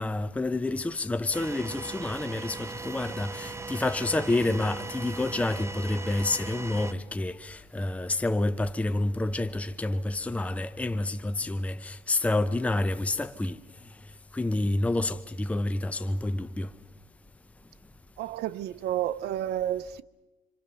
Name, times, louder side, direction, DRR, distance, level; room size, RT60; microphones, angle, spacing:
voice 1, 0.0-13.6 14.3-16.7, left 2 dB, 10° left, 0.8 m, -28 dB
sound 1, 1.3-6.9, right 3 dB, 15° right, 1.2 m, -39 dB
voice 2, 18.2-20.0, right 12 dB, 75° right, 0.8 m, -30 dB
27.5 x 26.5 x 6.9 m
cardioid pair, 110°, 17 cm